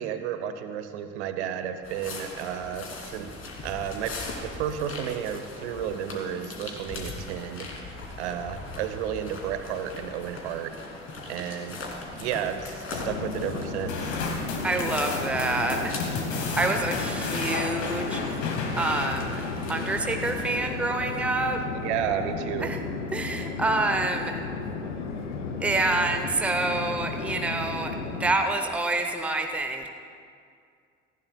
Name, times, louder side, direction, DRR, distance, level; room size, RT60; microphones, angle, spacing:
voice 1, 0.0-3.3 3.6-7.7 8.2-10.7 11.3-11.8 12.1-14.2 21.7-22.7, right 9 dB, 65° right, 9 dB, 0.9 m, -32 dB
sound 1, 1.8-20.7, left 3 dB, 35° left, 2.7 m, -40 dB
Chatter / Fixed-wing aircraft airplane, 12.9-28.4, left 4 dB, 70° left, 1.0 m, -34 dB
sound 2, 13.9-20.4, left 4 dB, 50° left, 1.7 m, -33 dB
voice 2, 14.6-16.0 16.3-19.4 19.7-21.6 22.6-22.8 23.1-24.4 25.6-29.9, right 2 dB, 5° right, 5 dB, 0.8 m, -27 dB
17.5 x 15.5 x 2.3 m, 2.3 s
figure-of-eight pair, 60°, 37 cm